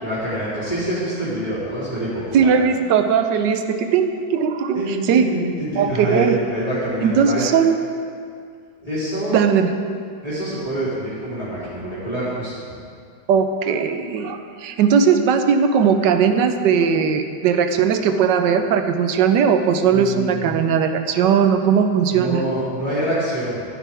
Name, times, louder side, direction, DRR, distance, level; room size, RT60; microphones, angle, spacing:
voice 1, 0.0-2.5 4.7-7.5 8.8-9.4 10.2-12.5 19.9-20.6 22.1-23.6, right 1 dB, 20° left, -11 dB, 3.2 m, -26 dB
voice 2, 2.3-4.8 5.1-5.3 5.8-6.4 7.0-7.8 9.3-9.7 13.3-22.4, right 7 dB, 80° right, 8 dB, 1.3 m, -18 dB
14.5 x 10.0 x 3.5 m, 2.2 s
omnidirectional pair, 1.9 m